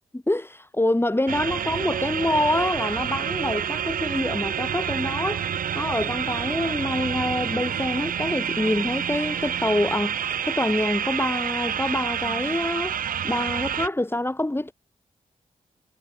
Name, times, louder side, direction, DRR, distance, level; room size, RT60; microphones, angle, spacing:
voice 1, 0.1-5.5 5.7-13.0 13.2-14.7, left 1 dB, 15° left, 5.1 m, -26 dB
sound 1, 1.3-13.9, right 8 dB, 75° right, 1.2 m, -28 dB
cardioid pair, 50°, 15 cm